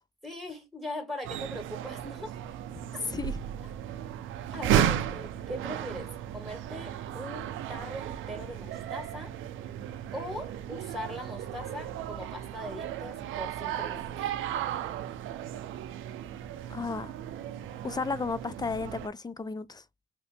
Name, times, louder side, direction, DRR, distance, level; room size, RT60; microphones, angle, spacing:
voice 1, 0.2-2.4 2.9-3.0 4.5-9.3 10.1-14.0, left 1 dB, ahead, 1.7 m, -40 dB
sound 1, 1.2-19.1, right 10 dB, 80° right, 0.5 m, -34 dB
voice 2, 3.1-3.4 16.7-17.1 17.8-19.8, left 4 dB, 20° left, 0.4 m, -33 dB
2.8 x 2.5 x 3.4 m
cardioid pair, 90°, 20 cm